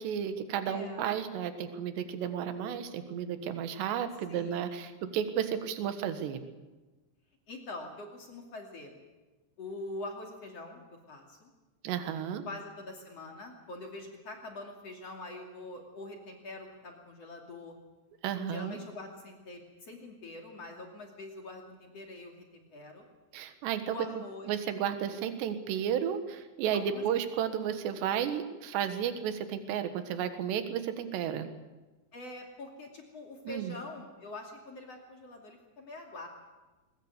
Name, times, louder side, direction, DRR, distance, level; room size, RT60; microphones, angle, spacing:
voice 1, 0.0-6.4 11.8-12.4 18.2-18.8 23.3-24.1 24.5-31.5 33.5-33.8, right 9 dB, 70° right, 9 dB, 3.5 m, -33 dB
voice 2, 0.6-1.1 4.3-4.7 7.5-9.0 9.6-11.5 12.4-17.8 18.5-23.0 23.9-24.5 26.7-27.2 32.1-36.3, left 2 dB, 40° left, 1 dB, 3.1 m, -44 dB
21.5 x 21.0 x 8.1 m, 1.2 s
omnidirectional pair, 5.3 m